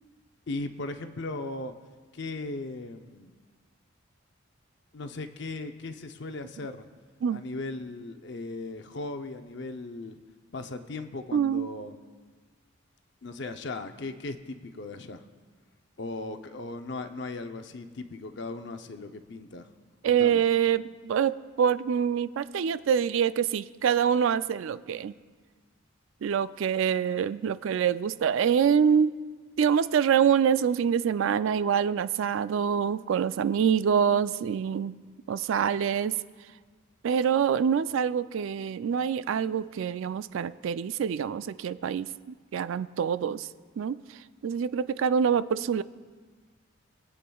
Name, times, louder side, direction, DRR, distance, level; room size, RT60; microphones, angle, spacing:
voice 1, 0.5-1.7 2.1-3.3 4.9-6.9 7.3-10.2 10.5-12.0 13.2-15.3 16.0-19.7 20.0-20.4, left 2 dB, 55° left, 8 dB, 0.6 m, -37 dB
voice 2, 11.3-11.7 20.0-25.1 26.2-29.2 29.6-34.9 35.3-36.2 37.0-43.5 43.8-44.0 44.4-45.8, right 7 dB, 70° right, 15 dB, 0.3 m, -25 dB
23.5 x 8.4 x 2.3 m, 1.5 s
head